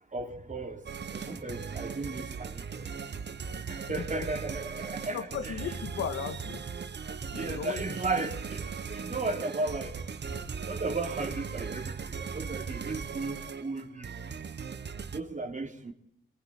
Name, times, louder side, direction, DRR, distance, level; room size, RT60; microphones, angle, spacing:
voice 1, 0.1-0.8 1.1-3.0 3.7-5.5 7.3-10.0 10.3-10.4 10.7-14.1 15.1-15.9, right 3 dB, 35° right, 3.4 m, -35 dB
sound 1, 0.9-15.2, right 6 dB, 55° right, 1.5 m, -38 dB
voice 2, 5.1-6.6 7.3-8.0, left 7 dB, 90° left, 2.2 m, -36 dB
22.5 x 22.0 x 9.4 m
cardioid pair, 60°, 21 cm